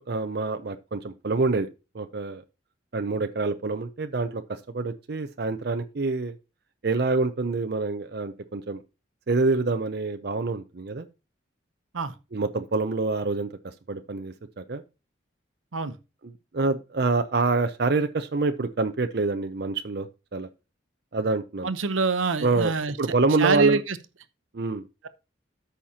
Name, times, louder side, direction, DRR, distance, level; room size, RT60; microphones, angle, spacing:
voice 1, 0.0-1.7 1.9-2.4 2.9-6.3 6.8-8.8 9.3-11.1 12.3-14.8 16.2-20.5 21.1-21.7 22.4-22.7 23.0-23.8 24.5-24.8, right 3 dB, 50° right, 0.5 m, -26 dB
voice 2, 21.6-22.9 23.4-24.0, right 4 dB, 85° right, 0.8 m, -25 dB
13.5 x 5.7 x 2.8 m
head